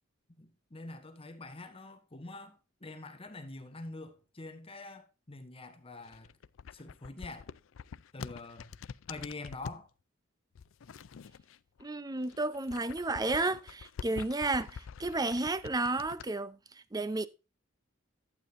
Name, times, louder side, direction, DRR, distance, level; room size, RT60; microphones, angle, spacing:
voice 1, 0.4-6.3 6.7-7.5 8.1-8.8 9.1-9.9, left 2 dB, 30° left, 1.3 m, -45 dB
sound 1, 6.0-9.8 10.5-11.9 12.2-16.3, left 6 dB, 75° left, 0.4 m, -46 dB
voice 2, 11.8-16.6 16.9-17.3, right 2 dB, 20° right, 0.6 m, -32 dB
12.0 x 8.8 x 2.6 m
head